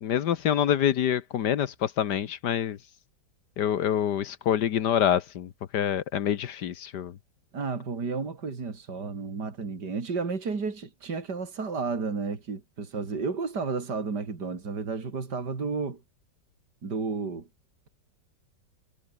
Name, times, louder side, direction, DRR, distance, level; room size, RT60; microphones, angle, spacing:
voice 1, 0.0-2.8 3.6-7.1, left 9 dB, 75° left, 1.6 m, -26 dB
voice 2, 7.5-16.0 16.8-17.5, right 4 dB, 75° right, 3.6 m, -32 dB
omnidirectional pair, 1.8 m